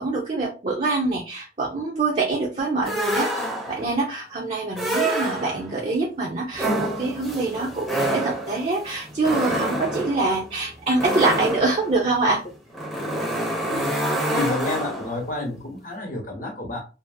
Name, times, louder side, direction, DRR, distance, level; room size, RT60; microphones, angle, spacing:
voice 1, 0.0-12.4, right 3 dB, 35° right, -2 dB, 0.5 m, -25 dB
sound 1, 2.9-3.9 4.7-5.8 6.5-15.3, right 1 dB, ahead, 0.7 m, -27 dB
voice 2, 14.3-16.8, left 2 dB, 50° left, 2 dB, 0.9 m, -29 dB
2.6 x 2.5 x 2.6 m, 0.31 s
head